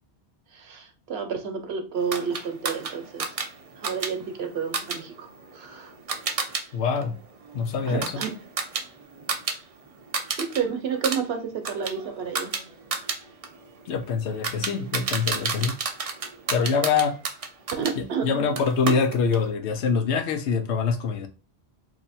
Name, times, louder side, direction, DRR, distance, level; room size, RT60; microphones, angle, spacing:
voice 1, 0.5-3.4 3.8-5.9 7.9-8.3 10.4-12.5 17.8-18.5, right 6 dB, 70° right, 0.9 m, -30 dB
sound 1, 2.1-6.6 7.0-9.6 9.9-10.6 10.9-18.0 18.6-19.5, right 4 dB, 45° right, 0.5 m, -31 dB
voice 2, 6.7-7.1 7.5-8.1 13.9-15.7 16.5-17.2 18.0-21.3, left 5 dB, 90° left, 0.9 m, -25 dB
2.8 x 2.7 x 4.1 m
omnidirectional pair, 1.1 m